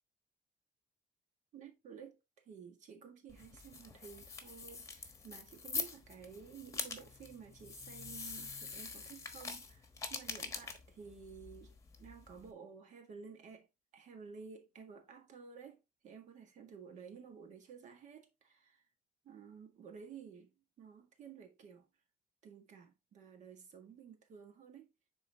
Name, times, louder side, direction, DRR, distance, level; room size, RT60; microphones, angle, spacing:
voice 1, 1.5-2.2 2.5-11.7 12.0-13.7 13.9-15.8 16.0-18.8 19.2-21.9 22.4-24.9, right 6 dB, 55° right, 1.7 m, -53 dB
sound 1, 3.3-12.5, left 4 dB, 20° left, 1.1 m, -45 dB
9.8 x 4.0 x 2.8 m
cardioid pair, 165°, 15 cm